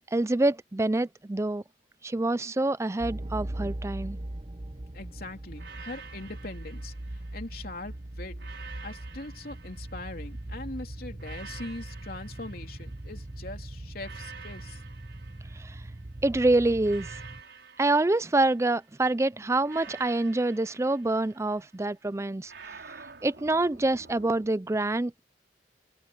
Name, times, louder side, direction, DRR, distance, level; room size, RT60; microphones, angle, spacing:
voice 1, 0.1-1.6 2.0-4.2 15.6-15.7 16.2-17.1 17.8-22.5 23.2-25.2, right 2 dB, 15° right, 0.4 m, -26 dB
sound 1, 3.0-17.4, right 1 dB, 30° right, 0.9 m, -40 dB
voice 2, 4.9-6.9 7.3-8.5 8.8-14.8, left 2 dB, 55° left, 3.3 m, -41 dB
sound 2, 5.6-7.7 8.4-10.5 11.2-13.4 14.0-16.2 16.8-19.0 19.6-21.8 22.5-24.5, right 6 dB, 80° right, 4.5 m, -49 dB
head